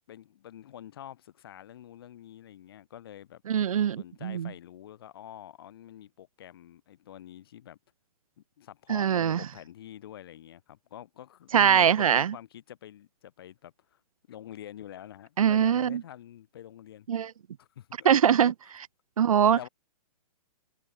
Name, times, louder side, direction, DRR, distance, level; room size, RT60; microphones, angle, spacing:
voice 1, 0.1-3.4 4.0-7.8 8.6-14.0 14.3-17.1 17.6-18.1 18.4-18.5 19.5-19.7, left 11 dB, 35° left, 3.0 m, -47 dB
voice 2, 3.5-4.5 8.9-9.4 11.5-12.3 15.4-16.0 17.1-17.3 18.0-18.5 19.2-19.6, right 8 dB, 60° right, 0.6 m, -22 dB
hypercardioid pair, 175°, 20 cm